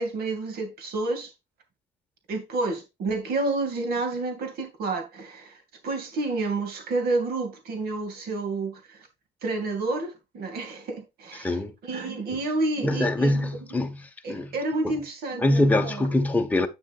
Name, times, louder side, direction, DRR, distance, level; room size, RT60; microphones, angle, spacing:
voice 1, 0.0-1.3 2.3-9.1 9.4-11.6 11.8-13.5 14.2-16.1, right 2 dB, 65° right, 2.3 m, -30 dB
voice 2, 11.4-11.7 12.3-12.4 12.8-14.5 14.8-14.9 15.4-16.7, left 1 dB, 10° left, 1.3 m, -24 dB
8.6 x 7.3 x 2.5 m
cardioid pair, 110°, 17 cm